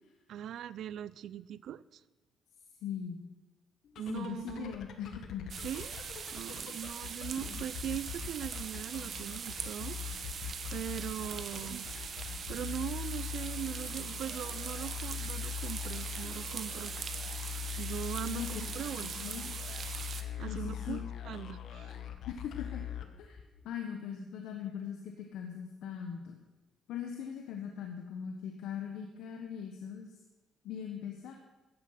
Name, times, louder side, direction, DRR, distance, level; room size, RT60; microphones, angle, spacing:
voice 1, 0.3-2.0 4.0-4.8 5.6-6.0 6.3-10.0 10.7-11.9 12.5-16.9 17.8-19.2 20.4-21.9, right 10 dB, 75° right, 18 dB, 0.5 m, -40 dB
voice 2, 2.8-3.2 4.1-5.5 7.4-7.6 18.3-18.5 18.8-19.6 20.5-21.0 22.3-22.8 23.2-23.4 23.6-26.3 26.9-30.1 30.6-31.3, left 8 dB, 90° left, 4 dB, 1.4 m, -40 dB
sound 1, 3.8-23.6, left 10 dB, 70° left, 1.4 m, -42 dB
sound 2, 5.5-20.2, right 6 dB, 55° right, 1.3 m, -41 dB
14.5 x 10.5 x 5.9 m, 1.2 s
cardioid pair, 95°, 0 cm